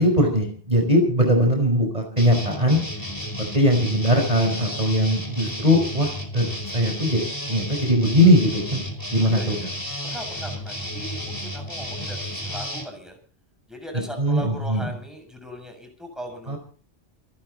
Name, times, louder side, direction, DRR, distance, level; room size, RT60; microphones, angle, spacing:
voice 1, 0.0-2.8 3.5-6.5 6.7-7.2 7.5-8.8 9.1-9.7 14.2-14.9 16.5-16.6, equal, 35° right, 3 dB, 5.1 m, -20 dB
sound 1, 2.2-12.8, equal, 15° left, 4.9 m, -33 dB
voice 2, 9.2-9.7 10.0-13.2 13.7-16.6, equal, ahead, 4 dB, 7.1 m, -38 dB
28.5 x 11.5 x 4.2 m, 0.41 s
omnidirectional pair, 1.2 m